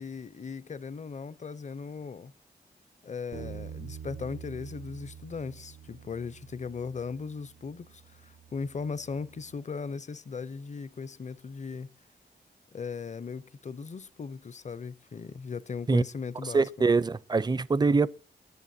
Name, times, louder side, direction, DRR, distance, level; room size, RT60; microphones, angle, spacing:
voice 1, 0.0-2.3 3.0-11.9 12.7-16.9, left 5 dB, 40° left, 0.6 m, -38 dB
Bass guitar, 3.3-9.6, right 8 dB, 80° right, 0.6 m, -46 dB
voice 2, 16.5-18.1, right 4 dB, 25° right, 0.5 m, -24 dB
21.5 x 11.0 x 2.7 m
wide cardioid pair, 90°, 18 cm